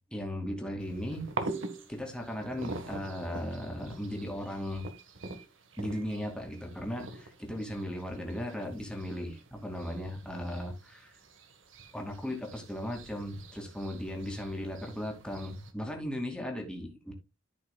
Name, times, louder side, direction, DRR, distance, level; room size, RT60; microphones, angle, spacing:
voice 1, 0.1-1.2 1.9-4.9 5.8-11.2 11.9-17.1, equal, 5° left, 2.5 m, -37 dB
sound 1, 0.8-15.7, right 3 dB, 70° right, 1.5 m, -45 dB
15.0 x 5.8 x 2.4 m
head